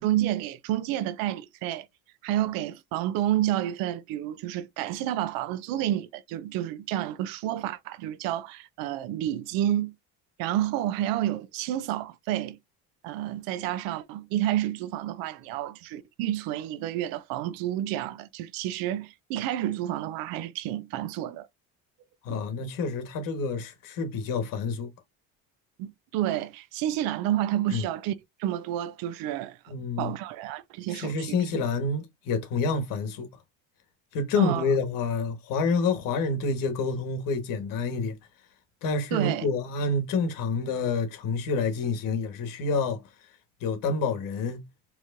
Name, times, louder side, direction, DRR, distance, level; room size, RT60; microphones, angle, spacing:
voice 1, 0.0-1.9 2.2-9.9 10.4-12.6 13.0-21.5 22.3-22.4 25.8-28.1 28.4-31.6 34.4-34.6 39.1-39.5, right 12 dB, 80° right, 0.6 m, -30 dB
voice 2, 22.2-24.9 27.7-27.8 29.7-30.1 30.9-33.3 34.1-38.2 38.8-43.0 43.6-44.6, left 4 dB, 70° left, 1.4 m, -28 dB
4.6 x 3.1 x 2.5 m
cardioid pair, 120°, 35 cm